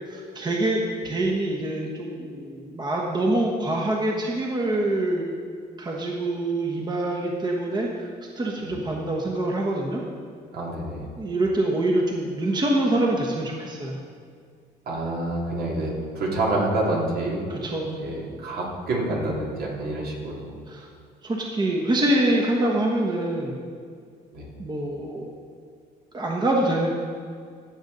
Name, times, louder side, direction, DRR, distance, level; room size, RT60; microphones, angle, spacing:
voice 1, 0.1-0.8 1.0-5.3 5.8-8.1 8.4-10.0 11.2-14.0 17.5-18.0 20.7-20.9 21.2-23.6 24.6-25.3 26.1-26.9, right 1 dB, 25° right, -1 dB, 1.2 m, -25 dB
voice 2, 10.5-11.1 14.9-17.5 18.0-20.5 24.3-24.5, right 2 dB, 65° right, -3 dB, 2.7 m, -27 dB
15.0 x 7.1 x 4.0 m, 2.2 s
cardioid pair, 110°, 17 cm